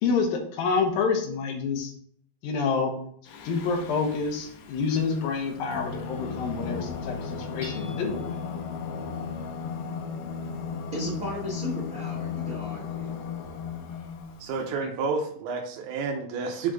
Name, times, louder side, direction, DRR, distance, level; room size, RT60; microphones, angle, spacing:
voice 1, 0.0-1.9 2.4-2.9 3.2-8.2 14.6-14.9, left 5 dB, 75° left, 3 dB, 2.7 m, -28 dB
Singing, 3.3-14.6, left 6 dB, 90° left, 2.9 m, -36 dB
Hammer / Chink clink, 7.6-8.4, left 1 dB, 25° left, 0.9 m, -45 dB
voice 2, 10.9-13.1, equal, 35° right, -5 dB, 1.4 m, -34 dB
voice 3, 14.4-16.7, right 4 dB, 85° right, 3 dB, 2.9 m, -30 dB
6.8 x 5.1 x 3.7 m, 0.63 s
omnidirectional pair, 4.5 m